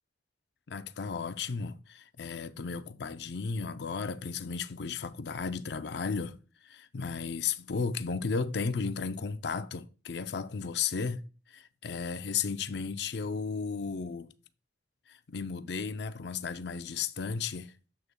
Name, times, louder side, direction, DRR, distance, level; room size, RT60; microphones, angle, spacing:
voice 1, 0.7-6.4 6.6-11.2 11.5-14.3 15.1-17.7, left 5 dB, 60° left, 0.5 m, -34 dB
9.5 x 7.7 x 2.2 m
head